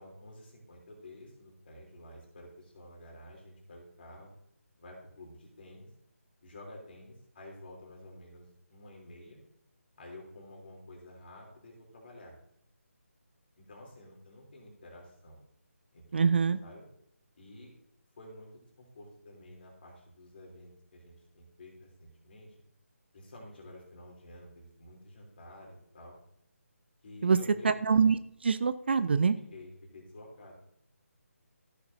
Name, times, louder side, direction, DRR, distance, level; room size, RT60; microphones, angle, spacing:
voice 1, 0.0-4.3 4.8-5.9 6.4-9.4 10.0-12.3 13.6-15.4 15.9-16.4 16.6-16.9 17.4-17.7 18.2-18.5 18.8-22.5 23.1-26.1 27.0-27.7 29.5-30.5, left 1 dB, 40° left, -1 dB, 3.2 m, -50 dB
voice 2, 16.1-16.6 27.2-27.4 27.6-28.2 28.4-29.4, right 5 dB, 45° right, 14 dB, 0.4 m, -24 dB
14.5 x 6.6 x 2.7 m, 0.73 s
figure-of-eight pair, 155°, 8 cm